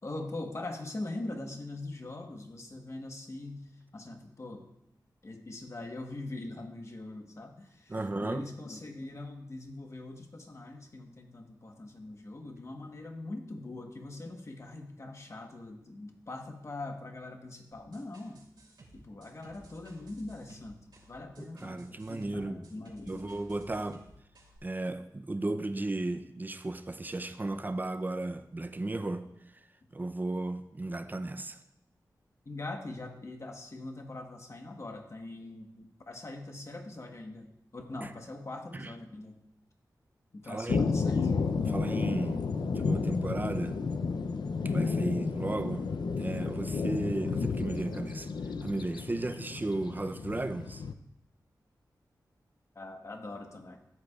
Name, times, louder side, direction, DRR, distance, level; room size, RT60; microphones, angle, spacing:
voice 1, 0.0-4.6 5.2-18.5 18.9-23.4 32.4-39.4 40.3-41.3 52.7-53.8, left 2 dB, 40° left, 1.2 m, -42 dB
voice 2, 7.9-8.5 21.4-22.6 23.1-24.0 24.6-29.3 29.9-31.6 38.0-38.1 38.7-38.9 40.4-40.9 41.7-42.4 42.7-43.8 44.6-45.9 46.2-48.3 48.6-50.8, right 2 dB, 25° right, 0.6 m, -35 dB
sound 1, 17.7-24.6, right 1 dB, 85° right, 2.9 m, -57 dB
sound 2, 40.7-50.9, left 4 dB, 75° left, 0.5 m, -32 dB
14.0 x 8.0 x 2.4 m
wide cardioid pair, 90°, 7 cm